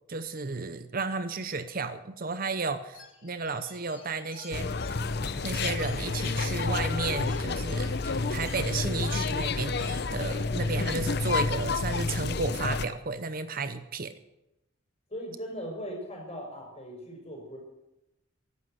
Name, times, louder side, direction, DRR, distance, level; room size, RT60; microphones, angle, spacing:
voice 1, 0.1-4.8 5.4-14.1, right 4 dB, 45° right, 11 dB, 0.8 m, -33 dB
sound 1, 2.9-9.0, left 4 dB, 90° left, 4.1 m, -52 dB
sound 2, 4.5-12.9, left 3 dB, 55° left, 0.7 m, -29 dB
sound 3, 4.8-6.0 6.6-7.3 9.2-9.3, equal, 10° left, 6.7 m, -50 dB
voice 2, 15.1-17.6, equal, 35° left, 0 dB, 5.8 m, -39 dB
14.0 x 11.5 x 7.9 m, 0.92 s
head